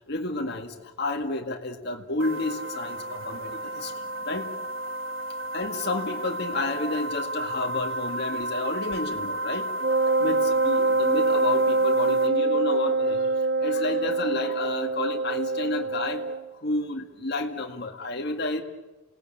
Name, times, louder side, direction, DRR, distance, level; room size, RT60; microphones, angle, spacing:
voice 1, 0.1-3.9 4.3-4.5 5.5-9.7 10.2-13.3 13.6-16.2 16.6-18.6, left 2 dB, 55° left, 3 dB, 2.0 m, -30 dB
sound 1, 2.2-12.3, right 1 dB, 85° right, 1.8 m, -32 dB
Wind instrument woodwind instrument, 9.8-16.5, right 3 dB, 50° right, 0.8 m, -24 dB
28.0 x 18.5 x 8.8 m, 1.1 s
head